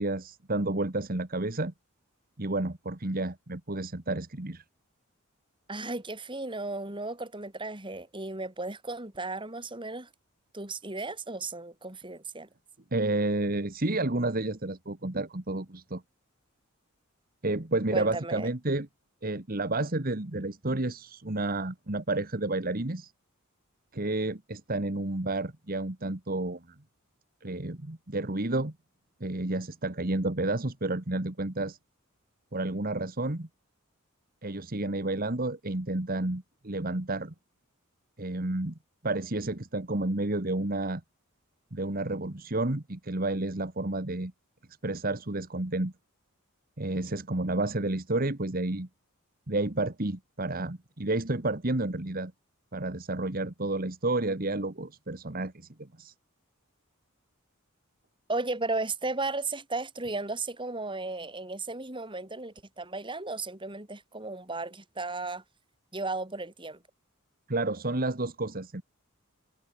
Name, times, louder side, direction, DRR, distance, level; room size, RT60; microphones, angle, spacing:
voice 1, 0.0-1.7 2.4-4.6 12.9-16.0 17.4-18.9 19.2-23.1 23.9-26.7 27.4-28.7 29.2-31.8 32.5-33.5 34.4-37.3 38.2-38.8 39.0-41.0 41.7-44.3 44.8-45.9 46.8-48.9 49.5-52.3 52.7-56.1 67.5-68.8, right 2 dB, 40° right, 1.7 m, -30 dB
voice 2, 5.7-10.1 10.5-12.5 17.9-18.5 58.3-65.4 65.9-66.8, right 3 dB, 25° right, 4.0 m, -35 dB
head